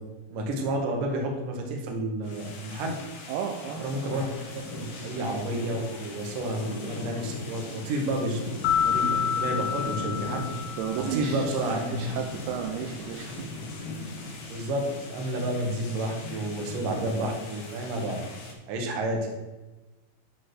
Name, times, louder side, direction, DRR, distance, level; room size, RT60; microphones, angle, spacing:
voice 1, 0.3-3.0 3.8-4.2 4.5-8.4 8.8-10.5 11.0-12.0 14.5-18.2 18.7-19.3, right 1 dB, 70° right, 1 dB, 2.1 m, -30 dB
sound 1, 2.2-18.5, left 3 dB, 65° left, 2.8 m, -39 dB
voice 2, 3.3-3.8 10.8-11.5 11.9-13.5, right 8 dB, 90° right, 3 dB, 2.5 m, -33 dB
sound 2, 8.6-11.4, left 8 dB, 80° left, 3.3 m, -28 dB
10.5 x 4.2 x 6.7 m, 1.2 s
omnidirectional pair, 6.0 m